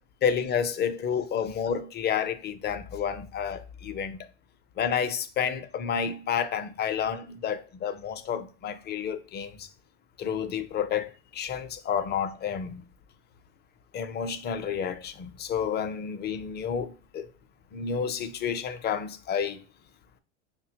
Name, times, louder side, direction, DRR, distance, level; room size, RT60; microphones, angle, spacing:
voice 1, 0.2-4.3 4.8-9.7 10.2-12.9 13.9-17.3 17.7-19.6, left 7 dB, 30° left, 0.5 m, -30 dB
5.4 x 2.2 x 2.7 m
hypercardioid pair, 90°, 35 cm